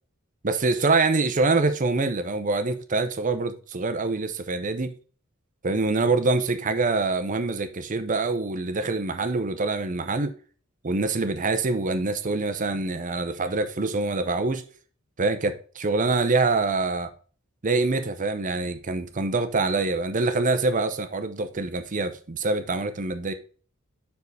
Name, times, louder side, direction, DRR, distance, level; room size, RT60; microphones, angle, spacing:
voice 1, 0.4-4.9 5.6-10.3 10.8-14.6 15.2-17.1 17.6-23.3, right 3 dB, 40° right, 0.7 m, -25 dB
4.8 x 4.7 x 5.4 m
head